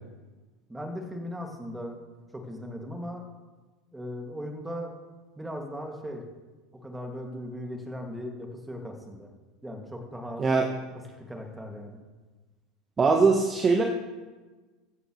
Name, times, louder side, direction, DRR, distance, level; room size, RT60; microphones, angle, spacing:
voice 1, 0.7-2.0 2.3-3.2 3.9-4.9 5.4-6.2 6.7-9.3 9.6-10.5 11.2-12.0, equal, 10° right, 3 dB, 2.4 m, -38 dB
voice 2, 13.0-13.8, right 4 dB, 25° right, 2 dB, 1.3 m, -21 dB
15.0 x 12.0 x 3.3 m, 1.3 s
figure-of-eight pair, 75°, 0 cm